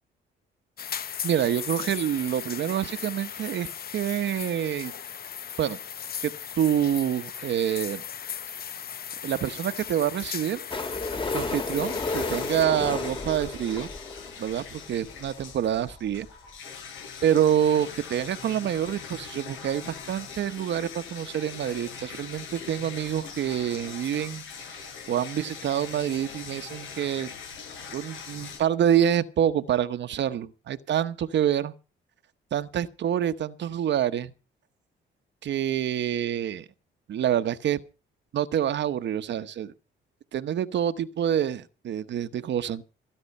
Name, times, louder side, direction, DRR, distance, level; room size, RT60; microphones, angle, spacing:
sound 1, 0.8-12.7, left 8 dB, 50° left, 0.9 m, -37 dB
voice 1, 1.2-4.9 5.6-5.8 6.2-8.0 9.2-10.6 11.3-13.9 14.4-16.3 17.2-24.4 24.7-24.8 25.1-27.3 27.9-31.7 32.5-34.3 35.4-36.6 37.1-37.8 38.3-39.7 40.3-42.8, right 10 dB, 65° right, 1.1 m, -27 dB
sound 2, 10.7-14.6 15.3-15.4 15.5-15.6 15.8-15.9 16.3-16.4, left 3 dB, 25° left, 2.5 m, -32 dB
sound 3, 11.6-28.6, left 6 dB, 80° left, 7.8 m, -42 dB
18.0 x 9.8 x 5.4 m
cardioid pair, 90°, 20 cm